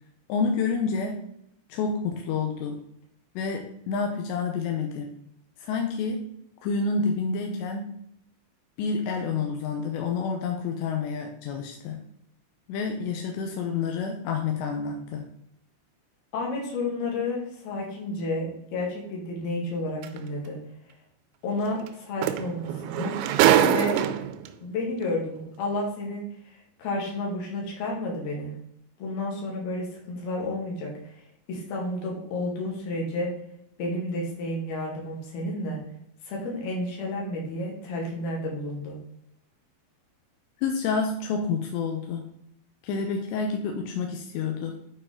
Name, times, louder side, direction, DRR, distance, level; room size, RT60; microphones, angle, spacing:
voice 1, 0.3-1.2 1.7-2.8 3.4-5.1 5.6-6.3 6.6-7.9 8.8-12.0 12.7-15.2 40.6-42.3 42.8-44.8, left 5 dB, 80° left, 3 dB, 2.6 m, -28 dB
voice 2, 16.3-20.6 21.4-23.2 23.6-24.0 24.6-28.6 29.0-33.3 33.8-35.8 36.2-39.0, left 2 dB, 60° left, -2 dB, 3.3 m, -31 dB
sound 1, 20.0-20.2 21.9-22.0 22.2-24.5 25.4-25.5, right 10 dB, 85° right, 3.1 m, -22 dB
8.8 x 4.7 x 3.7 m, 0.75 s
omnidirectional pair, 5.8 m